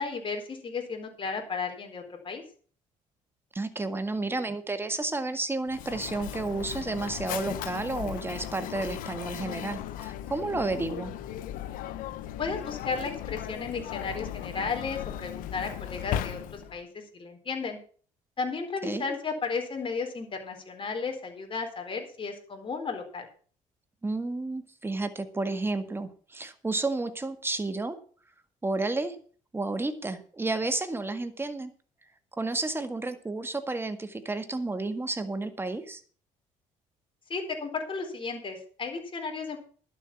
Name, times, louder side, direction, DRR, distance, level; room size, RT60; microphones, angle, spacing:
voice 1, 0.0-2.4 12.4-17.8 18.4-23.3 37.3-39.6, left 4 dB, 40° left, 4 dB, 4.2 m, -34 dB
voice 2, 3.5-11.1 18.8-19.2 24.0-28.0 28.6-29.2 29.5-31.7 32.4-36.0, right 2 dB, 15° right, 9 dB, 1.8 m, -31 dB
Mechanisms, 5.7-16.8, left 11 dB, 80° left, 1.0 m, -37 dB
11.5 x 7.5 x 7.2 m, 0.44 s
cardioid pair, 85°, 14 cm